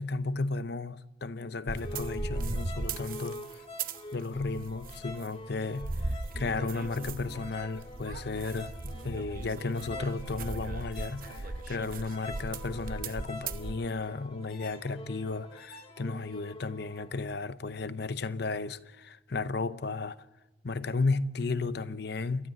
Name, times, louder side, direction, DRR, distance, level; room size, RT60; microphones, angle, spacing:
voice 1, 0.0-3.6 4.1-20.2 20.6-22.5, left 3 dB, 60° left, 0.7 m, -34 dB
sound 1, 1.7-4.0 4.3-5.3 5.5-13.8, right 3 dB, 45° right, 0.8 m, -38 dB
sound 2, 1.8-17.2, left 1 dB, 30° left, 1.8 m, -46 dB
28.0 x 12.5 x 7.6 m
head